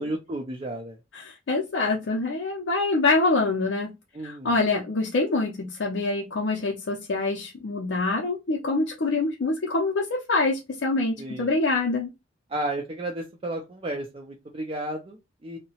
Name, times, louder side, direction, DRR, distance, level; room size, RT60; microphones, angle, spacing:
voice 1, 0.0-1.0 4.1-4.6 11.2-11.5 12.5-15.6, right 1 dB, 30° right, 0.4 m, -33 dB
voice 2, 1.1-3.9 4.2-12.1, left 3 dB, 70° left, 0.5 m, -25 dB
2.7 x 2.0 x 2.8 m
head